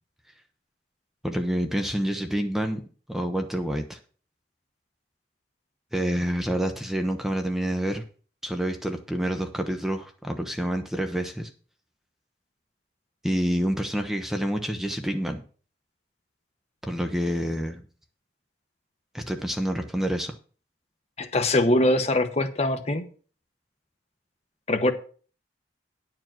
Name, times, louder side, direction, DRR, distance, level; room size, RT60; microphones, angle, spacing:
voice 1, 1.2-2.8 3.1-4.0 5.9-8.0 8.4-11.5 13.2-15.4 16.8-17.8 19.1-20.3, equal, ahead, 0.8 m, -28 dB
voice 2, 21.2-23.0 24.7-24.9, left 1 dB, 35° left, 1.0 m, -22 dB
10.5 x 4.8 x 7.6 m
head